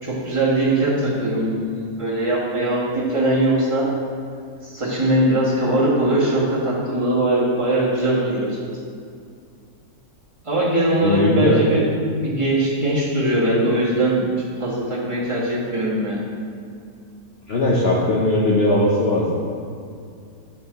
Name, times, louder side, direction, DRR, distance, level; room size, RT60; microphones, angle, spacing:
voice 1, 0.0-3.9 4.6-8.6 10.4-11.8 12.2-14.3 14.6-16.2, right 1 dB, 20° right, -7 dB, 1.6 m, -21 dB
voice 2, 11.0-11.6 17.5-19.4, left 2 dB, 55° left, -3 dB, 0.8 m, -19 dB
7.7 x 5.7 x 4.1 m, 2.3 s
omnidirectional pair, 1.6 m